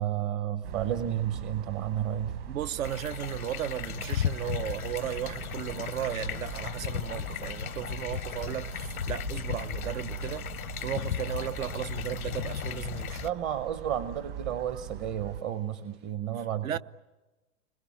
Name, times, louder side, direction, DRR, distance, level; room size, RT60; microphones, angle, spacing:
voice 1, 0.0-2.4 13.2-16.8, right 10 dB, 25° right, 0.8 m, -32 dB
sound 1, 0.6-15.4, right 11 dB, 45° right, 1.5 m, -42 dB
sound 2, 0.7-16.1, right 5 dB, 85° right, 6.5 m, -60 dB
voice 2, 2.5-10.5 10.8-13.2 16.6-16.8, right 10 dB, 70° right, 0.9 m, -35 dB
sound 3, 2.8-13.3, left 10 dB, 85° left, 0.8 m, -35 dB
29.5 x 21.5 x 8.9 m
hypercardioid pair, 130°, 42 cm